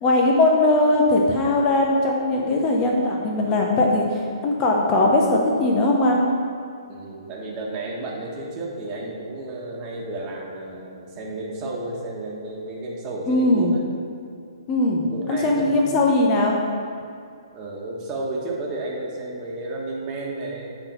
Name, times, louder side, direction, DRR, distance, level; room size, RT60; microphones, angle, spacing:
voice 1, 0.0-6.3 13.3-13.8 14.7-16.6, left 2 dB, 25° left, -1 dB, 1.0 m, -20 dB
voice 2, 6.9-13.8 15.1-15.8 17.5-20.7, right 2 dB, 25° right, -3 dB, 1.5 m, -32 dB
9.1 x 4.1 x 5.6 m, 2.4 s
hypercardioid pair, 135°, 3 cm